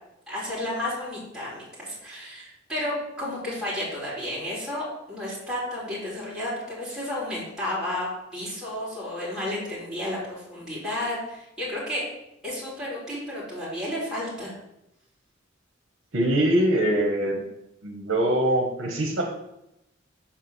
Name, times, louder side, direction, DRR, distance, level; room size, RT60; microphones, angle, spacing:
voice 1, 0.3-12.0 12.4-14.5, left 1 dB, 5° right, -8 dB, 2.8 m, -32 dB
voice 2, 16.1-17.4 17.8-19.2, right 1 dB, 65° right, 2 dB, 1.1 m, -23 dB
5.8 x 4.2 x 6.1 m, 0.85 s
head